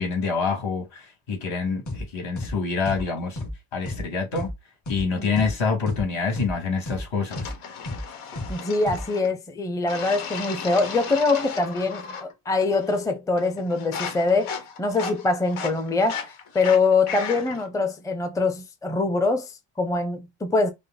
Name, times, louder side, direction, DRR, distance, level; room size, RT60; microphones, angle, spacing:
voice 1, 0.0-3.4 3.7-4.5 4.9-7.7, left 4 dB, 65° left, 2.6 m, -26 dB
sound 1, 1.9-2.0 2.4-2.5 2.9-3.0 3.4-3.5 3.9-4.0 4.4-4.5 4.9-5.0 5.4-5.5 5.9-6.0 6.4-6.5 6.9-7.0 7.4-7.5 7.9-8.0 8.4-8.5 8.9-9.0, left 2 dB, 35° left, 2.4 m, -32 dB
sound 2, 7.3-9.3 9.9-12.3 12.6-13.1 13.4-17.7, left 6 dB, 90° left, 1.3 m, -36 dB
voice 2, 8.5-14.5 14.8-20.7, left 3 dB, 5° left, 0.6 m, -24 dB
5.1 x 2.1 x 3.9 m
cardioid pair, 115°, 50 cm